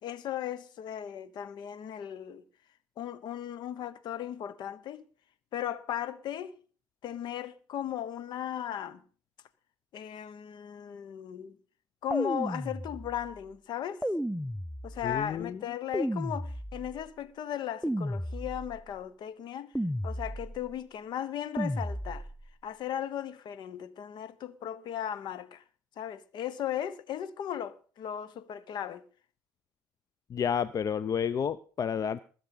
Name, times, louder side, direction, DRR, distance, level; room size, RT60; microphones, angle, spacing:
voice 1, 0.0-2.4 3.0-5.1 5.5-6.5 7.0-9.0 9.9-11.6 12.0-14.0 14.8-19.7 20.0-22.3 22.6-25.6 26.0-29.0, left 10 dB, 60° left, 1.1 m, -37 dB
sound 1, 12.1-13.3 14.0-15.2 15.9-17.1 17.8-18.9 19.8-20.7 21.6-22.5, equal, ahead, 0.6 m, -33 dB
voice 2, 15.0-15.6 30.3-32.2, left 7 dB, 45° left, 0.6 m, -30 dB
20.0 x 7.9 x 5.4 m
hypercardioid pair, 65°, 9 cm